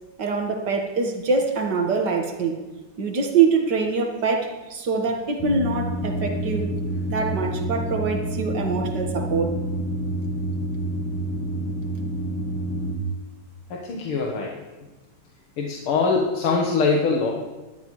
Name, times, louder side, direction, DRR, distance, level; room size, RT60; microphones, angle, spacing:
voice 1, 0.2-2.6 3.0-6.8 7.1-9.6, right 4 dB, 55° right, 3 dB, 2.1 m, -24 dB
sound 1, 5.4-12.9, right 1 dB, 20° left, 0.5 m, -28 dB
voice 2, 13.7-14.6 15.6-17.3, left 4 dB, 90° left, -1 dB, 2.1 m, -23 dB
19.5 x 12.0 x 3.1 m, 1.2 s
omnidirectional pair, 2.3 m